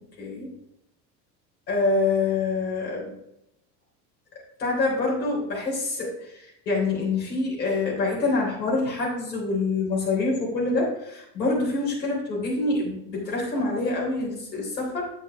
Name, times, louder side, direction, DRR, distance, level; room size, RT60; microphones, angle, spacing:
voice 1, 0.2-0.5 1.7-3.1 4.6-15.1, left 3 dB, 90° left, -3 dB, 3.6 m, -26 dB
7.9 x 7.7 x 3.5 m, 0.83 s
hypercardioid pair, 80°, 49 cm